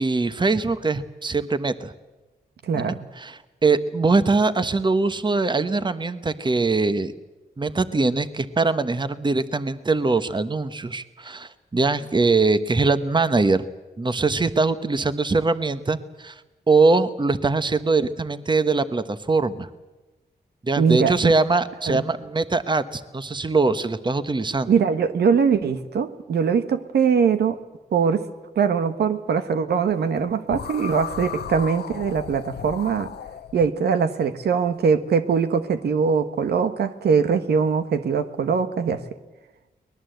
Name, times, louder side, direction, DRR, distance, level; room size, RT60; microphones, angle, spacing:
voice 1, 0.0-1.9 2.8-7.1 7.6-13.7 14.0-16.3 16.7-19.7 20.6-24.7, right 3 dB, 30° right, 12 dB, 1.2 m, -22 dB
voice 2, 2.7-3.1 20.8-21.3 21.9-22.0 24.6-27.6 27.9-28.2 28.5-33.1 33.5-39.0, right 6 dB, 85° right, 9 dB, 1.3 m, -22 dB
sound 1, 30.5-33.7, left 9 dB, 90° left, 0.9 m, -35 dB
23.5 x 20.0 x 8.0 m, 1.1 s
cardioid pair, 75°, 16 cm